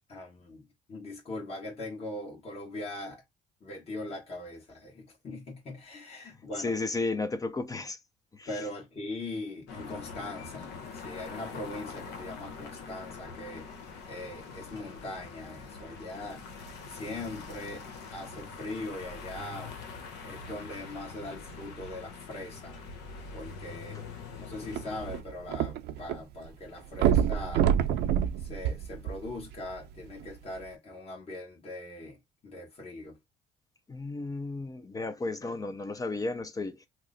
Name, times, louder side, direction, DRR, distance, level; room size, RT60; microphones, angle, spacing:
voice 1, 0.1-3.2 3.6-6.7 8.5-13.7 14.0-16.5 16.9-17.8 18.1-19.8 20.2-22.8 23.3-24.0 24.4-27.7 28.4-32.2 32.4-33.2, left 2 dB, 35° left, 1.4 m, -41 dB
voice 2, 6.6-8.0 8.3-8.5 33.9-36.9, left 3 dB, 20° left, 0.4 m, -33 dB
sound 1, 9.7-25.2, left 4 dB, 85° left, 0.9 m, -44 dB
sound 2, 24.7-26.2 26.5-26.6 27.0-29.5 30.2-30.3, right 9 dB, 75° right, 0.5 m, -26 dB
3.0 x 2.0 x 3.8 m
cardioid pair, 110°, 17 cm